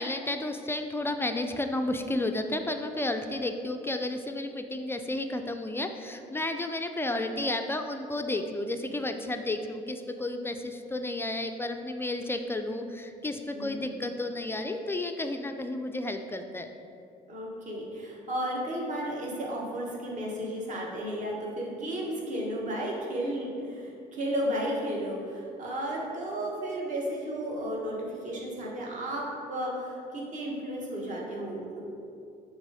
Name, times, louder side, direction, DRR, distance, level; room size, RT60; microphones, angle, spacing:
voice 1, 0.0-16.7, left 2 dB, 15° left, 6 dB, 0.3 m, -32 dB
voice 2, 13.5-13.9 17.3-31.8, equal, 45° right, -3 dB, 1.4 m, -33 dB
7.2 x 3.4 x 4.8 m, 2.5 s
cardioid pair, 110°, 17 cm